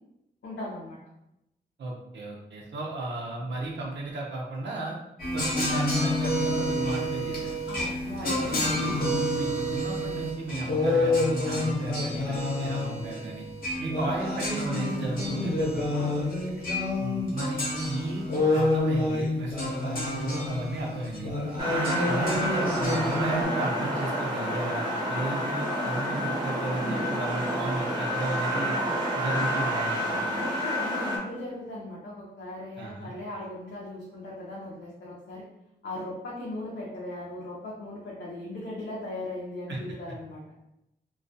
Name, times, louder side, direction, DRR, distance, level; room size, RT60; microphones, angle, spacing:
voice 1, 0.4-1.0 7.7-8.8 15.9-16.5 21.6-21.9 30.3-35.4 35.8-40.4, left 1 dB, 90° left, -7 dB, 0.6 m, -38 dB
voice 2, 1.8-4.9 5.3-7.6 8.2-13.5 13.8-15.9 17.0-21.3 21.7-28.8 29.1-30.2 32.8-33.1 39.7-39.8, right 2 dB, 80° right, -3 dB, 0.6 m, -34 dB
sound 1, 5.2-23.4, left 1 dB, 55° left, 0.7 m, -28 dB
sound 2, 21.6-31.2, equal, 25° right, 0.6 m, -29 dB
2.3 x 2.3 x 2.5 m, 0.87 s
wide cardioid pair, 150°, 18 cm